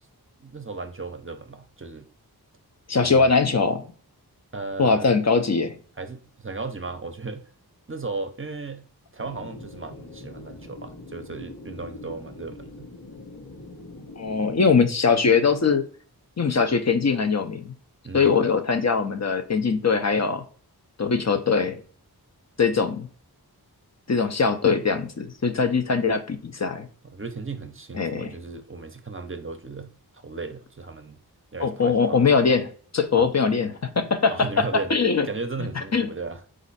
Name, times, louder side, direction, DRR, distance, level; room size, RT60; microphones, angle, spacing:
voice 1, 0.4-2.1 3.0-3.4 4.5-5.1 6.0-7.4 7.9-8.8 9.1-12.9 18.0-18.4 27.1-29.9 30.2-31.2 31.5-32.3 33.2-33.3 34.3-34.9 35.3-36.4, right 3 dB, 35° right, 0.6 m, -35 dB
voice 2, 2.9-3.8 4.8-5.7 14.2-15.8 16.4-17.7 18.1-20.4 21.0-21.8 22.6-23.1 24.1-26.9 27.9-28.3 31.6-32.7 32.9-34.6 34.9-35.3 35.8-36.1, left 5 dB, 45° left, 0.6 m, -21 dB
sound 1, 9.2-14.8, left 2 dB, 85° left, 1.1 m, -43 dB
4.1 x 2.6 x 4.0 m
wide cardioid pair, 55°, 38 cm